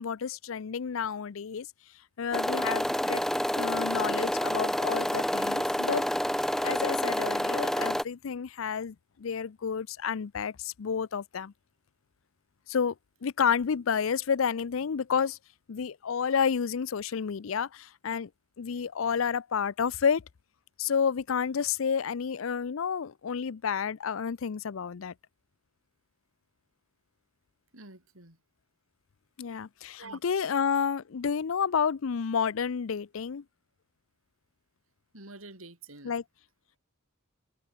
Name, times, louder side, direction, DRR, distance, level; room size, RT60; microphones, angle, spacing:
voice 1, 0.0-1.7 2.2-3.2 3.5-6.1 6.6-11.5 12.7-12.9 13.2-15.4 15.7-18.3 18.6-20.2 20.8-25.1 29.4-33.4 36.0-36.2, left 6 dB, 75° left, 0.5 m, -30 dB
sound 1, 2.3-8.0, equal, ahead, 0.6 m, -28 dB
voice 2, 27.7-28.4 30.0-30.2 35.1-36.2, right 3 dB, 90° right, 6.7 m, -47 dB
head